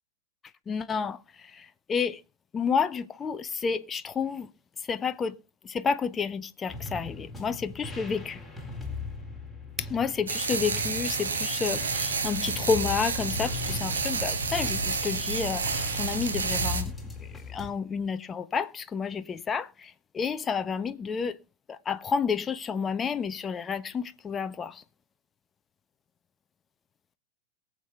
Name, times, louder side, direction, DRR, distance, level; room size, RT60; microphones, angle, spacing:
voice 1, 0.7-2.2 2.5-4.5 4.8-5.4 5.6-8.4 9.8-21.4 21.7-24.8, left 6 dB, 20° left, 0.6 m, -30 dB
sound 1, 6.7-17.7, left 3 dB, ahead, 4.1 m, -39 dB
sound 2, 10.3-16.8, right 4 dB, 70° right, 2.2 m, -30 dB
22.0 x 7.4 x 3.3 m
figure-of-eight pair, 90°, 0 cm